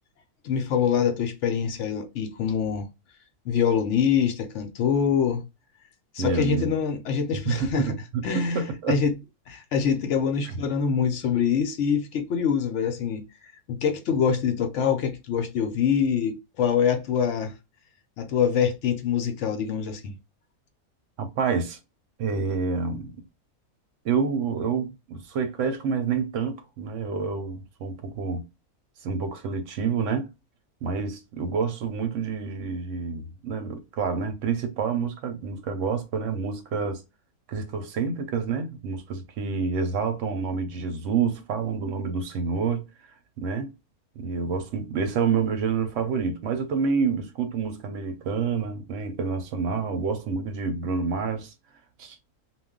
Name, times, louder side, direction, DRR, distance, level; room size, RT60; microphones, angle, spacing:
voice 1, 0.4-2.9 3.5-5.4 6.1-8.0 8.2-9.1 9.5-13.2 13.7-17.5 18.2-20.1, left 7 dB, 65° left, 0.8 m, -25 dB
voice 2, 6.2-6.7 7.5-9.0 10.5-10.6 21.2-21.8 22.2-23.1 24.0-28.5 29.0-30.3 30.8-37.0 37.5-42.9 43.4-43.7 44.2-51.5 52.0-52.2, right 5 dB, 65° right, 0.9 m, -28 dB
2.3 x 2.2 x 3.6 m
omnidirectional pair, 1.6 m